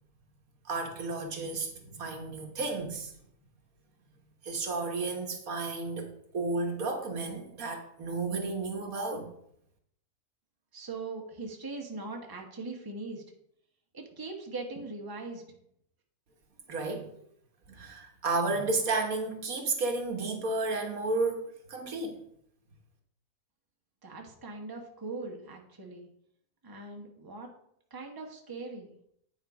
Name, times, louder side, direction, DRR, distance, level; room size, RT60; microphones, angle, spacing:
voice 1, 0.6-3.1 4.4-9.3 16.7-17.1 17.7-22.2, right 3 dB, 70° right, 3 dB, 1.6 m, -32 dB
voice 2, 10.7-13.2 13.9-15.4 24.0-26.1 26.6-27.5 27.9-28.9, right 3 dB, 15° right, 1 dB, 1.1 m, -40 dB
9.3 x 4.8 x 4.8 m, 0.71 s
omnidirectional pair, 1.6 m